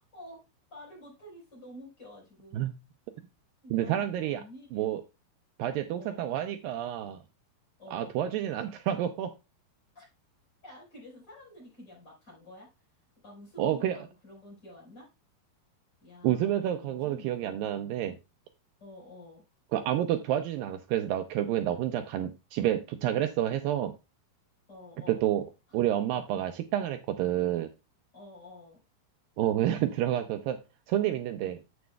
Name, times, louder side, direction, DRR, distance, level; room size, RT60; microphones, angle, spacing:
voice 1, 0.7-2.6 3.6-4.9 5.9-6.2 7.8-8.1 9.9-10.0 10.6-12.7 13.2-15.1 16.0-17.9 18.8-19.4 24.7-25.3 28.1-28.8 29.4-29.5, left 1 dB, 25° left, -3 dB, 4.7 m, -49 dB
voice 2, 3.7-4.4 4.7-5.0 5.6-7.2 7.9-9.3 13.6-14.0 16.2-18.2 19.7-23.9 25.1-25.4 25.7-27.7 29.4-30.6 30.9-31.6, right 12 dB, 90° right, 7 dB, 2.0 m, -29 dB
11.5 x 7.9 x 2.2 m, 0.26 s
omnidirectional pair, 4.7 m